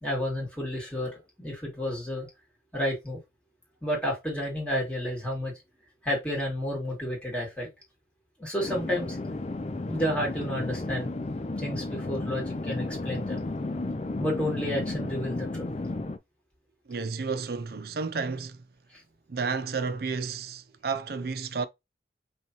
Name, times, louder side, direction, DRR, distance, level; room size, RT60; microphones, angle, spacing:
voice 1, 0.0-2.3 2.7-3.2 3.8-5.5 6.0-7.7 8.4-9.2 9.9-11.1 11.6-13.4 14.2-15.7 18.9-19.0, equal, 5° left, 2.2 m, -31 dB
sound 1, 8.6-16.2, left 2 dB, 35° left, 0.5 m, -33 dB
voice 2, 16.9-18.6 19.3-21.7, right 4 dB, 60° right, 0.5 m, -31 dB
5.4 x 3.3 x 2.9 m
head